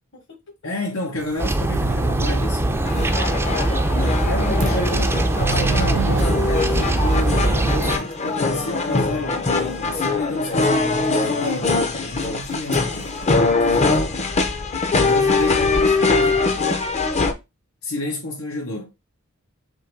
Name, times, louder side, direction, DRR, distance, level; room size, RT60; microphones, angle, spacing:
voice 1, 0.1-0.5 3.1-3.5 15.2-17.1, left 3 dB, 60° left, 1.4 m, -39 dB
voice 2, 0.6-3.0 3.9-5.2 5.5-11.7 12.0-13.1 13.5-14.2 15.0-16.4 17.8-18.9, left 1 dB, 90° left, 1.0 m, -30 dB
sound 1, 1.1-2.6 3.0-3.1 3.7-3.8 4.4-8.8 9.2-10.0 10.5-11.7 12.3-12.5 12.7-13.3, right 7 dB, 85° right, 0.4 m, -33 dB
sound 2, 1.4-8.0, right 1 dB, 10° right, 0.4 m, -21 dB
sound 3, 2.8-17.3, left 3 dB, 35° left, 0.6 m, -22 dB
3.7 x 3.1 x 4.4 m
head